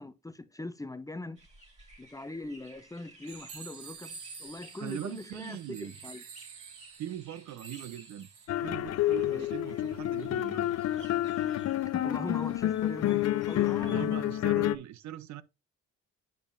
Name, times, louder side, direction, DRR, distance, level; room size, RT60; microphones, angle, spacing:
voice 1, 0.0-1.4 2.0-6.2 9.3-9.5 11.9-14.1, left 2 dB, 10° left, 0.6 m, -41 dB
sound 1, 1.4-14.1, right 1 dB, 20° right, 2.1 m, -57 dB
sound 2, 3.3-8.5, right 5 dB, 85° right, 1.6 m, -48 dB
voice 2, 4.8-6.0 7.0-8.3 8.6-10.7 13.8-15.4, right 12 dB, 65° right, 0.6 m, -41 dB
sound 3, 8.5-14.8, left 13 dB, 60° left, 0.5 m, -29 dB
9.1 x 5.2 x 2.5 m
cardioid pair, 90°, 30 cm